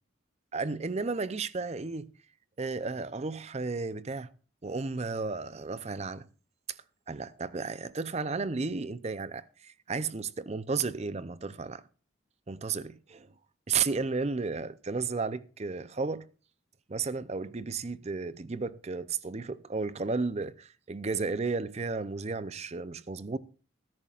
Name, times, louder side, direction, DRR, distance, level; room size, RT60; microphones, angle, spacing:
voice 1, 0.5-2.1 2.6-4.3 4.6-6.3 6.7-6.8 7.1-11.8 12.5-13.3 13.7-16.3 16.9-23.4, right 4 dB, 30° right, 0.5 m, -33 dB
21.0 x 11.0 x 2.4 m
head